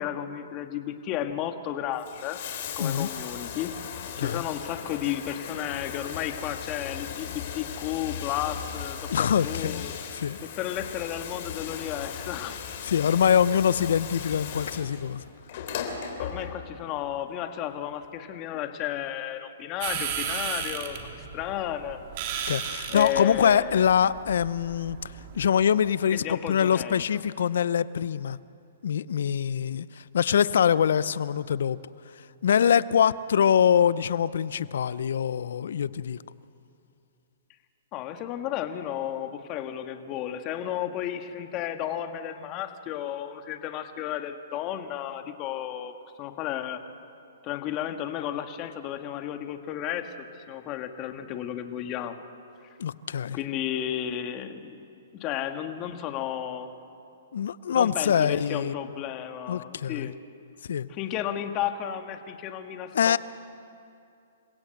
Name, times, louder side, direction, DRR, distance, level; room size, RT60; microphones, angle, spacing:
voice 1, 0.0-2.4 2.8-3.8 4.2-9.9 10.6-12.6 16.2-22.0 22.9-23.8 26.1-27.0 37.9-46.8 47.4-52.2 53.3-56.7 57.7-60.2 60.9-63.2, left 11 dB, 35° left, 7 dB, 1.7 m, -33 dB
Bathtub (filling or washing), 1.9-16.8 18.0-18.1, left 8 dB, 55° left, 3.6 m, -37 dB
voice 2, 9.1-9.9 10.1-10.4 12.8-15.2 22.5-25.0 25.3-28.4 28.8-31.8 32.4-36.2 52.8-53.4 57.3-58.9 59.5-60.1 60.7-60.9 62.9-63.2, left 8 dB, 70° left, 18 dB, 0.7 m, -24 dB
sound 1, 19.8-25.5, right 8 dB, 45° right, 3.1 m, -35 dB
28.0 x 17.0 x 8.0 m, 2.6 s
hypercardioid pair, 130°, 0 cm